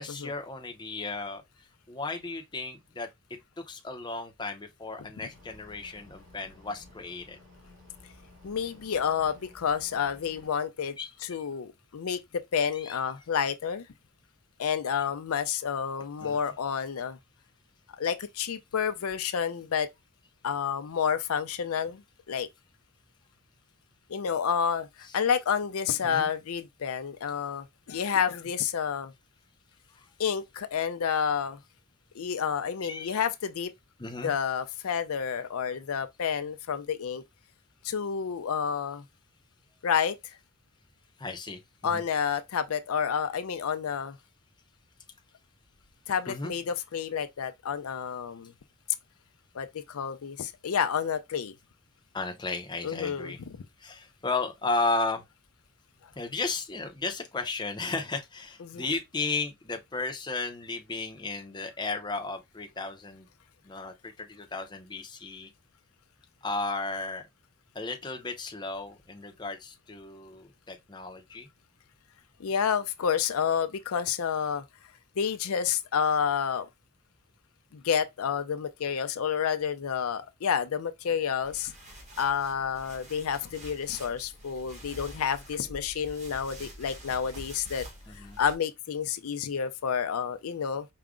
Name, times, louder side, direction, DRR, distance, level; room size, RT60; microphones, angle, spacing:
voice 1, 0.0-1.4 1.9-3.1 3.6-7.4 11.0-11.1 12.7-13.0 15.0-15.1 16.2-16.4 25.0-25.2 26.0-26.3 30.0-30.1 32.9-33.2 34.0-34.3 41.2-41.6 41.9-42.0 46.3-46.5 52.1-53.4 53.8-55.2 56.2-63.3 63.6-65.5 66.4-67.3 67.7-71.5 88.1-88.4, left 3 dB, 20° left, 0.6 m, -34 dB
sound 1, 5.3-10.5, left 2 dB, 65° right, 2.9 m, -54 dB
voice 2, 8.4-11.0 11.2-13.9 14.6-17.2 18.0-19.9 20.4-22.0 22.3-22.5 24.1-24.9 25.1-29.1 30.2-31.6 32.2-33.7 34.2-37.2 37.8-39.0 39.8-40.2 41.8-44.2 46.1-48.5 49.5-51.5 52.8-53.5 58.6-58.8 72.4-74.6 75.2-76.7 77.7-81.7 82.2-87.9 88.1-90.9, left 7 dB, 70° left, 0.5 m, -29 dB
sound 2, 81.4-88.6, equal, 30° right, 1.3 m, -47 dB
4.8 x 2.1 x 3.6 m
head